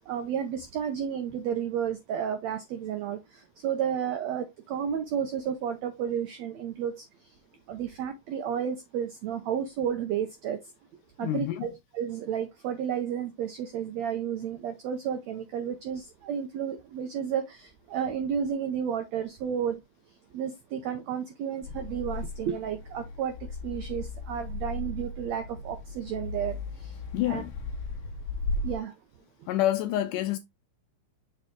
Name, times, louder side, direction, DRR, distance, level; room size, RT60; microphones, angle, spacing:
voice 1, 0.1-3.2 3.6-6.9 7.7-10.6 11.2-19.8 20.3-23.3 23.6-26.6 27.3-27.4 28.6-28.9, right 8 dB, 85° right, 1.5 m, -32 dB
voice 2, 11.2-11.7 27.1-27.5 29.5-30.4, left 14 dB, 80° left, 1.9 m, -27 dB
sound 1, 21.6-28.8, left 2 dB, 65° left, 1.5 m, -36 dB
6.6 x 4.0 x 3.6 m
omnidirectional pair, 4.1 m